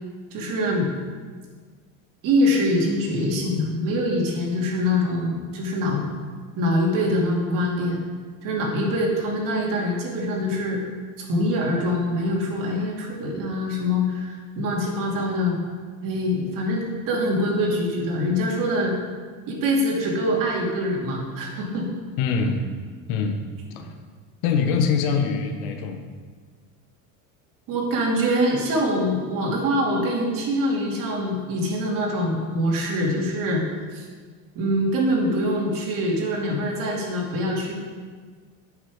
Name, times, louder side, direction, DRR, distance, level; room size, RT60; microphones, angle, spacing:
voice 1, 0.3-0.9 2.2-6.0 6.6-8.0 8.4-10.8 11.2-15.6 16.0-18.9 19.5-21.9 23.8-23.9 27.7-33.6 33.9-34.1 34.5-37.7, equal, 50° right, -2 dB, 2.7 m, -24 dB
voice 2, 22.2-22.7 23.1-23.4 23.7-24.0 24.4-26.1, left 5 dB, 75° left, 4 dB, 1.4 m, -24 dB
10.5 x 6.0 x 4.9 m, 1.5 s
supercardioid pair, 125°, 42 cm